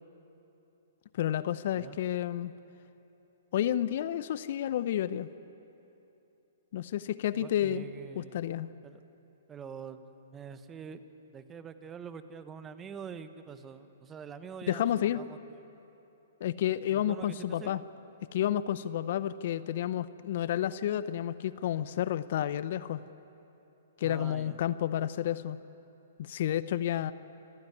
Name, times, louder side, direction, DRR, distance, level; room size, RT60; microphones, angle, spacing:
voice 1, 1.1-2.5 3.5-5.3 6.7-7.9 8.2-8.7 14.7-15.2 16.4-17.8 18.3-23.0 24.0-25.6 26.2-27.1, left 11 dB, 55° left, 16 dB, 0.6 m, -30 dB
voice 2, 7.3-8.5 8.8-9.0 9.5-10.0 10.3-11.0 11.3-15.6 16.9-17.8 24.0-24.6, right 7 dB, 20° right, 10 dB, 1.2 m, -45 dB
26.0 x 15.0 x 9.6 m, 3.0 s
hypercardioid pair, 120°, 0 cm